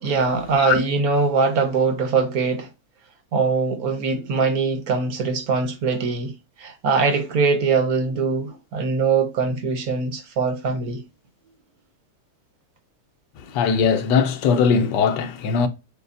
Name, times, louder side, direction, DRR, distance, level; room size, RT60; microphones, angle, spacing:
voice 1, 0.0-2.7 3.3-6.3 6.6-11.0, right 4 dB, 65° right, 1.2 m, -22 dB
voice 2, 13.5-15.7, left 6 dB, 80° left, 1.3 m, -20 dB
6.6 x 2.3 x 2.4 m
omnidirectional pair, 1.8 m